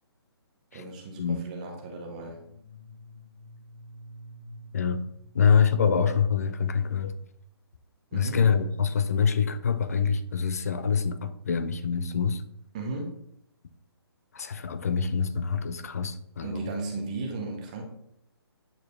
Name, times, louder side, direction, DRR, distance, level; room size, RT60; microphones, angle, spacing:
voice 1, 0.7-2.4 8.1-8.4 12.7-13.1 16.4-17.8, right 3 dB, 15° right, 0.7 m, -35 dB
sound 1, 1.8-6.5, equal, 60° left, 1.2 m, -49 dB
voice 2, 5.3-7.1 8.1-12.4 14.3-16.7, left 6 dB, 35° left, 0.4 m, -25 dB
8.4 x 4.4 x 3.2 m
hypercardioid pair, 170°, 14 cm